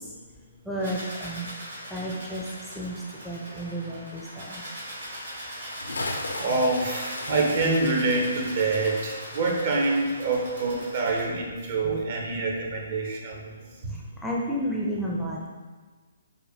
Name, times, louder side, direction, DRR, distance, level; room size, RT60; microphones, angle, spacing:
voice 1, 0.7-1.5 1.9-2.4 2.7-3.0 3.2-4.6 14.2-15.5, equal, ahead, -5 dB, 0.4 m, -31 dB
sound 1, 0.8-11.2, equal, 70° right, 1.4 m, -40 dB
Bathtub (filling or washing) / Splash splatter, 5.6-10.6 10.8-10.9, left 2 dB, 85° left, 0.4 m, -37 dB
voice 2, 6.4-13.6 13.8-13.9, right 3 dB, 50° right, -1 dB, 0.8 m, -26 dB
4.9 x 2.2 x 2.7 m, 1.4 s
figure-of-eight pair, 135°, 0 cm